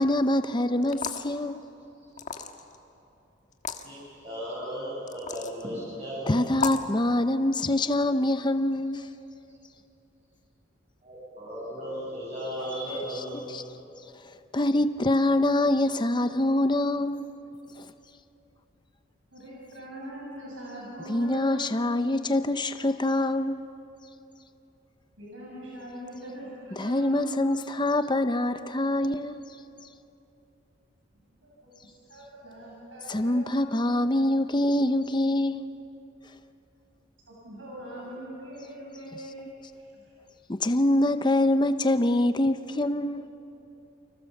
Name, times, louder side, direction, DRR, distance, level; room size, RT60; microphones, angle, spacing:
voice 1, 0.0-1.6 6.3-9.1 13.3-13.6 14.5-17.2 21.1-23.6 26.8-29.4 33.1-35.7 40.5-43.2, left 1 dB, 25° left, 0.7 m, -25 dB
sound 1, 0.8-1.3 2.2-2.8 3.5-3.8 5.1-5.5 6.5-6.9, left 6 dB, 40° left, 1.5 m, -33 dB
voice 2, 4.2-6.4 11.0-13.5, equal, 35° right, 7.9 m, -35 dB
voice 3, 19.3-21.7 25.2-27.4 31.4-33.6 37.3-39.4 39.8-40.0, right 1 dB, 85° right, 7.5 m, -41 dB
29.5 x 25.5 x 7.2 m
head